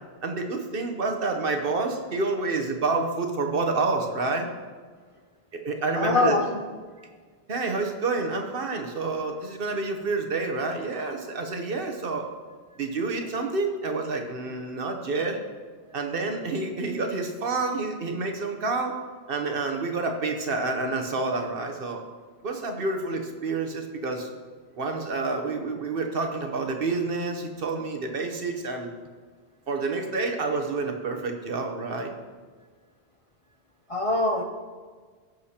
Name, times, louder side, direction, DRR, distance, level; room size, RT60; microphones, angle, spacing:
voice 1, 0.2-4.5 5.5-6.4 7.5-12.3 12.8-15.4 15.9-18.9 19.3-22.0 22.4-24.3 24.7-28.9 29.7-32.1, right 3 dB, 60° right, 3 dB, 1.1 m, -28 dB
voice 2, 5.9-6.4 33.9-34.4, left 2 dB, 40° left, 2 dB, 0.5 m, -23 dB
15.5 x 6.6 x 2.9 m, 1.5 s
omnidirectional pair, 1.1 m